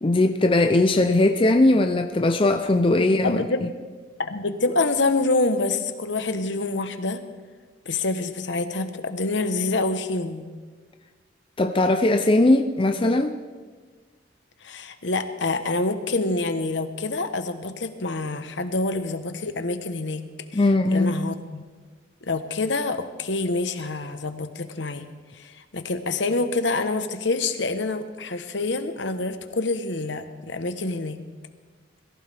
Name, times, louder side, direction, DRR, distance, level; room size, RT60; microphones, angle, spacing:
voice 1, 0.0-3.7 11.6-13.3 20.5-21.2, left 2 dB, 25° left, 0.5 m, -20 dB
voice 2, 3.2-3.6 4.2-7.2 7.9-10.4 14.6-20.2 20.5-21.6 22.2-25.1 25.3-31.2, left 3 dB, 70° left, 1.0 m, -26 dB
22.0 x 15.0 x 3.4 m
head